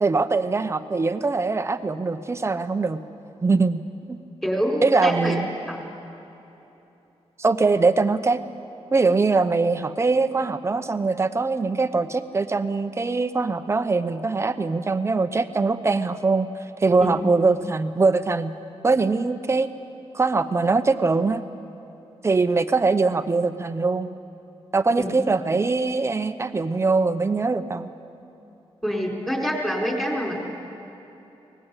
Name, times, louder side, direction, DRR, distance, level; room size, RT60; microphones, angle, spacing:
voice 1, 0.0-3.0 3.4-3.8 4.1-4.2 4.8-5.5 7.4-8.4 8.9-16.5 16.8-18.5 18.8-19.7 20.1-21.4 22.2-24.1 24.7-27.9, right 3 dB, 25° right, 10 dB, 0.8 m, -22 dB
voice 2, 4.4-5.4 5.7-5.8 17.0-17.2 25.0-25.1 28.8-30.3, equal, 5° left, -1 dB, 4.2 m, -26 dB
24.5 x 19.0 x 8.3 m, 3.0 s
wide cardioid pair, 155°, 11 cm